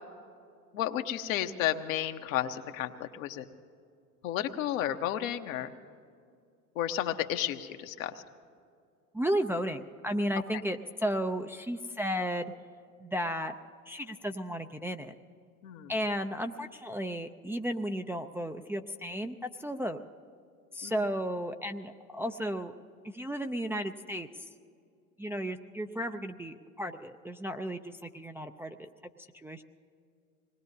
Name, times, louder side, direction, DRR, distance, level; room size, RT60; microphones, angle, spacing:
voice 1, 0.7-3.5 4.2-5.7 6.7-8.2 10.5-10.6 15.6-15.9 20.8-20.9, left 11 dB, 65° left, 6 dB, 1.1 m, -32 dB
voice 2, 9.1-12.5 13.0-13.5 13.9-15.1 15.9-20.0 20.7-22.7 23.1-24.3 25.2-28.9 29.3-29.6, equal, 5° right, 4 dB, 0.5 m, -34 dB
26.0 x 19.5 x 2.8 m, 2.3 s
hypercardioid pair, 75°, 43 cm